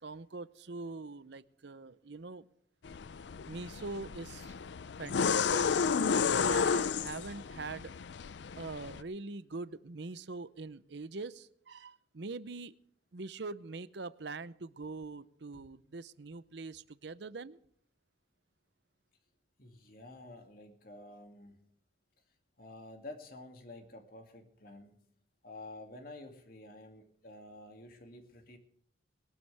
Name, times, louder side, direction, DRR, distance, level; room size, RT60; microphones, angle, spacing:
voice 1, 0.0-2.5 3.5-4.6 5.0-5.8 6.4-7.9 8.6-12.7 13.1-17.6, right 3 dB, 65° right, 16 dB, 0.7 m, -43 dB
sound 1, 2.8-9.0, left 6 dB, 65° left, 0.5 m, -32 dB
voice 2, 6.3-6.6 15.5-15.7 19.6-21.6 22.6-25.0 25.4-28.6, left 2 dB, 50° left, 4 dB, 2.5 m, -50 dB
21.0 x 12.0 x 3.5 m, 0.67 s
head